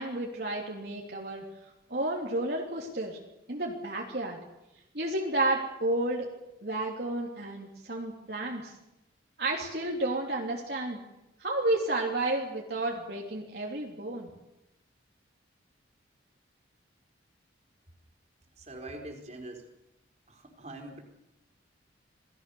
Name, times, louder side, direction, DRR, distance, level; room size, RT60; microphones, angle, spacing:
voice 1, 0.0-1.4 1.9-3.2 3.5-4.4 4.9-6.3 6.6-8.7 9.4-11.0 11.4-14.3, right 2 dB, 55° right, -1 dB, 2.9 m, -31 dB
voice 2, 18.6-19.7 20.3-21.0, right 1 dB, 35° right, 3 dB, 4.1 m, -43 dB
28.0 x 19.0 x 6.9 m, 0.92 s
head